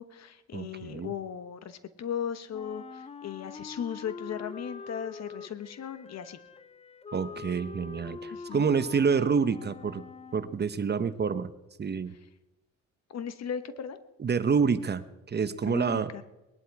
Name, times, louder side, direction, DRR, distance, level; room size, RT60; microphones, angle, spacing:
voice 1, 0.0-6.4 8.3-8.7 13.1-14.0 15.6-16.2, left 8 dB, 60° left, 12 dB, 1.2 m, -37 dB
voice 2, 0.5-1.1 7.1-10.0 10.3-11.5 11.8-12.1 14.2-16.1, right 6 dB, 35° right, 13 dB, 0.9 m, -28 dB
Wind instrument woodwind instrument, 2.5-10.6, left 5 dB, 20° left, 0.6 m, -44 dB
20.0 x 11.0 x 4.8 m, 0.98 s
cardioid pair, 90°, 30 cm